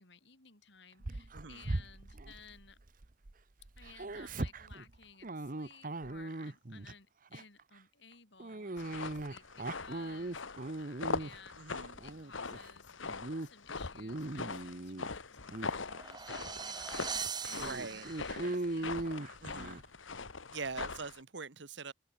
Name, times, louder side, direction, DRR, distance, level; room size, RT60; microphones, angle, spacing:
voice 1, 0.0-2.8 3.8-13.0 13.4-18.9, left 5 dB, 60° left, 4.4 m, -57 dB
Dog, 1.0-3.3 3.6-6.9 7.3-7.6 8.4-11.5 11.9-12.7 13.0-13.5 13.8-15.1 15.5-15.7 16.4-16.5 16.8-16.9 17.6-19.8, right 2 dB, 40° right, 0.9 m, -39 dB
sound 1, 8.8-21.2, left 4 dB, 75° left, 1.6 m, -42 dB
voice 2, 11.6-11.9 17.6-18.1 19.4-19.8 20.5-21.9, right 4 dB, 65° right, 1.3 m, -43 dB
sound 2, 15.5-18.5, right 6 dB, 20° right, 1.2 m, -41 dB
open air
head